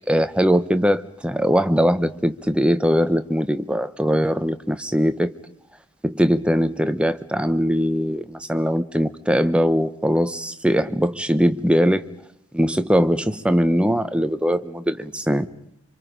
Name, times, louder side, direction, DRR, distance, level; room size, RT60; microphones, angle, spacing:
voice 1, 0.0-5.3 6.0-12.0 12.5-15.5, equal, 5° right, 0.8 m, -21 dB
28.5 x 25.5 x 5.2 m
head